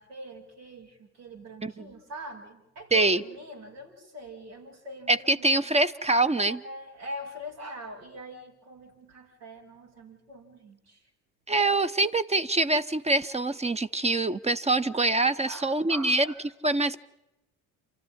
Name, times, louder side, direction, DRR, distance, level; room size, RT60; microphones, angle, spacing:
voice 1, 0.0-5.5 6.3-11.1 15.4-16.4, equal, 75° right, 5.5 m, -43 dB
voice 2, 2.9-3.2 5.1-6.6 11.5-16.3 16.6-17.0, right 2 dB, 15° right, 0.8 m, -24 dB
29.0 x 14.0 x 10.0 m
figure-of-eight pair, 60°, 47 cm